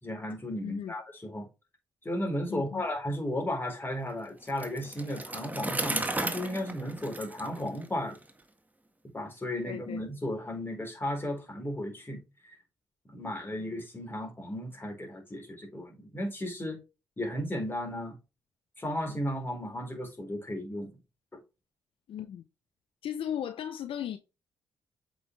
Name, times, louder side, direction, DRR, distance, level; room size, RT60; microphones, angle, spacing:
voice 1, 0.0-1.5 2.0-8.2 9.1-12.5 13.1-16.8 17.2-18.2 18.8-20.9 21.3-21.4, left 1 dB, 20° left, 4.3 m, -35 dB
voice 2, 0.6-0.9 2.5-2.9 9.6-10.0 22.1-22.4 23.0-24.2, left 9 dB, 60° left, 0.6 m, -36 dB
Bicycle, 4.5-8.3, right 2 dB, 15° right, 1.7 m, -35 dB
7.8 x 5.4 x 3.3 m
hypercardioid pair, 45°, 10 cm